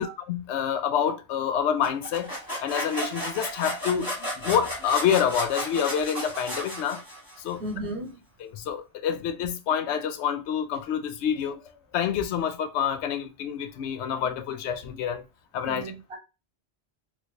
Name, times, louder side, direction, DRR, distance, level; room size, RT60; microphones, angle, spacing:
voice 1, 0.0-2.3 2.6-7.0 7.4-7.6 8.4-11.6 11.9-15.2 15.5-15.9, left 8 dB, 90° left, 0.9 m, -27 dB
sound 1, 1.8-7.5, equal, 20° left, 1.4 m, -34 dB
voice 2, 7.6-8.2 15.6-16.2, right 1 dB, 60° right, 1.5 m, -35 dB
3.2 x 3.1 x 2.6 m
omnidirectional pair, 1.1 m